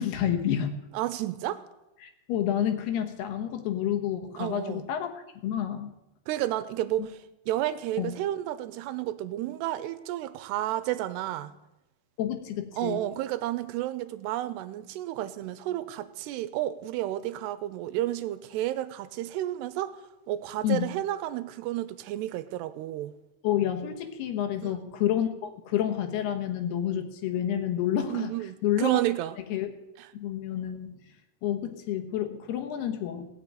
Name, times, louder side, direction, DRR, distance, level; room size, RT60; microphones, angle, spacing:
voice 1, 0.0-0.8 2.0-5.9 7.0-7.1 8.0-8.1 12.2-13.0 20.6-20.9 23.4-28.3 28.6-29.0 29.5-29.7 30.1-31.0 31.4-33.3, left 10 dB, 75° left, 5 dB, 3.1 m, -29 dB
voice 2, 0.9-1.6 4.4-4.9 6.3-11.5 12.8-20.0 20.3-23.1 24.6-24.7 28.1-29.4 30.0-30.1, right 14 dB, 80° right, 13 dB, 2.8 m, -31 dB
18.0 x 6.8 x 8.9 m, 0.93 s
omnidirectional pair, 4.9 m